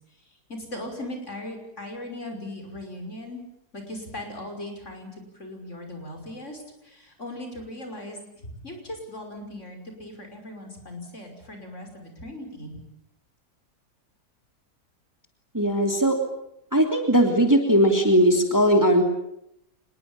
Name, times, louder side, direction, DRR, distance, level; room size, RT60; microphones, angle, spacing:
voice 1, 0.5-3.4 3.7-12.8, left 1 dB, 45° left, 4 dB, 6.2 m, -38 dB
voice 2, 15.5-16.2 16.7-19.0, equal, 10° right, 4 dB, 3.0 m, -19 dB
26.0 x 21.5 x 8.9 m, 0.78 s
omnidirectional pair, 1.8 m